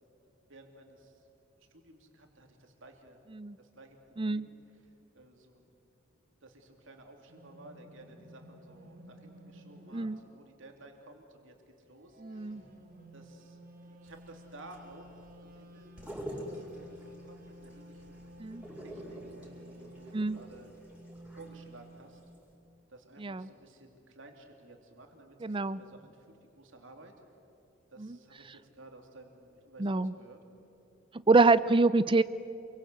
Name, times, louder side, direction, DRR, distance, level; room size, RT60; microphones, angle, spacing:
voice 1, 0.5-1.2 1.6-3.2 3.6-4.0 4.2-4.5 4.8-5.7 6.4-12.7 13.1-18.4 18.8-20.7 21.3-22.2 22.9-26.3 26.5-27.1 27.9-30.4, right 2 dB, 70° right, 3 dB, 3.1 m, -55 dB
voice 2, 4.2-4.5 9.9-10.2 12.2-12.6 18.4-18.6 20.1-20.4 23.2-23.5 25.4-25.8 28.0-28.2 29.8-30.1 31.3-32.2, right 3 dB, 25° right, 16 dB, 0.5 m, -26 dB
sound 1, 7.3-10.2 11.8-22.1, right 1 dB, 45° right, 3.7 m, -53 dB
sound 2, 14.1-22.0 22.3-22.4, equal, 5° right, 5.1 m, -46 dB
28.0 x 23.0 x 8.1 m, 2.7 s
head